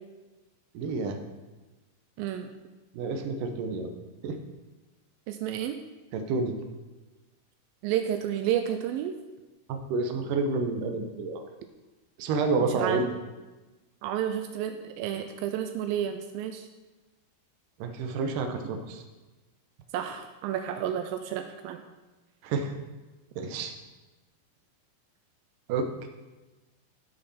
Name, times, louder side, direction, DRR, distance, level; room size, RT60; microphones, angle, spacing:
voice 1, 0.7-1.2 2.9-3.9 4.2-4.4 6.1-6.6 9.7-11.4 12.2-13.1 17.8-19.0 22.4-22.7 23.4-23.7 25.7-25.9, right 3 dB, 70° right, 5 dB, 2.3 m, -29 dB
voice 2, 2.2-2.5 5.3-5.8 7.8-9.2 12.8-13.0 14.0-16.7 19.9-21.8, right 10 dB, 85° right, 6 dB, 2.1 m, -31 dB
15.5 x 6.4 x 4.2 m, 1.2 s
omnidirectional pair, 4.6 m